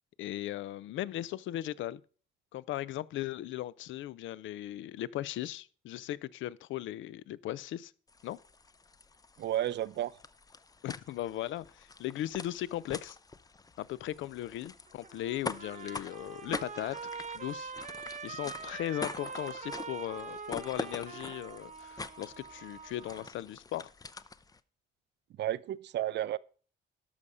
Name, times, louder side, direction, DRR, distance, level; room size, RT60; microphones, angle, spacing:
voice 1, 0.2-2.0 2.5-7.9 8.2-8.4 10.8-13.2 13.8-17.0 17.3-17.7 18.2-23.9, left 13 dB, 75° left, 0.5 m, -37 dB
sound 1, 8.1-24.6, left 4 dB, 20° left, 0.5 m, -45 dB
voice 2, 9.4-10.2 25.4-26.4, right 12 dB, 60° right, 0.5 m, -32 dB
Trumpet, 14.9-23.3, right 5 dB, 40° right, 1.0 m, -44 dB
12.0 x 5.5 x 4.9 m
cardioid pair, 90°, 20 cm